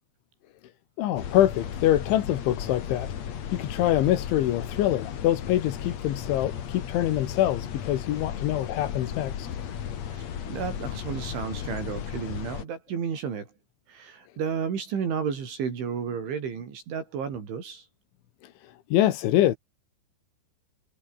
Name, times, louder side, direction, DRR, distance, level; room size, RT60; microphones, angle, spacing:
voice 1, 1.0-3.1 3.5-9.5 18.4-19.6, left 13 dB, 80° left, 4.0 m, -25 dB
sound 1, 1.2-12.6, left 9 dB, 50° left, 2.2 m, -35 dB
voice 2, 10.1-13.5 13.9-17.9, right 6 dB, 75° right, 7.1 m, -32 dB
omnidirectional pair, 5.4 m